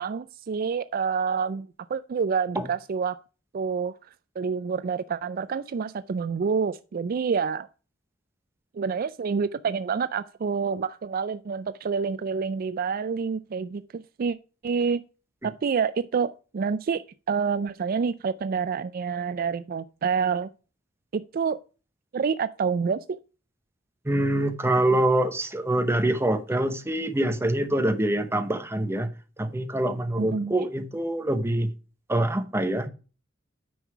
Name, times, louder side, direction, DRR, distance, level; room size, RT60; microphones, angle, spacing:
voice 1, 0.0-3.2 3.5-3.9 4.4-7.7 8.7-14.4 14.6-15.0 15.4-17.0 17.3-20.5 21.1-21.6 22.1-23.2 30.2-30.5, right 5 dB, 50° right, 0.4 m, -27 dB
voice 2, 24.0-29.1 29.4-31.7 32.1-32.9, right 1 dB, 15° right, 0.9 m, -25 dB
9.3 x 5.5 x 4.6 m
head